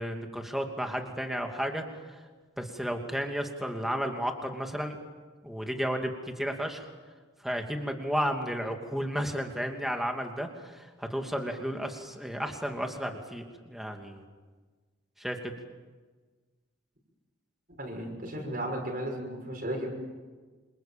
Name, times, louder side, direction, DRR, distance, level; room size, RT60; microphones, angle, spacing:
voice 1, 0.0-2.2 2.6-5.0 5.4-6.8 7.4-14.2 15.2-15.5, equal, ahead, 3 dB, 2.7 m, -33 dB
voice 2, 17.8-19.9, right 1 dB, 45° right, 0 dB, 6.4 m, -34 dB
27.5 x 27.5 x 7.5 m, 1.4 s
head